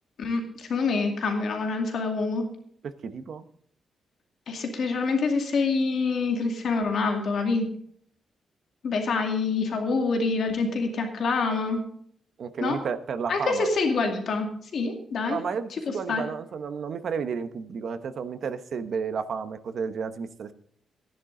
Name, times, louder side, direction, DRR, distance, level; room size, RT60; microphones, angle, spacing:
voice 1, 0.2-2.5 4.5-7.7 8.8-11.8 12.6-12.8 13.3-15.4 15.9-16.2, left 4 dB, 55° left, 3 dB, 2.2 m, -26 dB
voice 2, 3.0-3.5 12.4-13.7 15.3-20.5, right 6 dB, 55° right, 10 dB, 1.0 m, -32 dB
15.0 x 10.5 x 3.8 m, 0.64 s
wide cardioid pair, 170°, 0 cm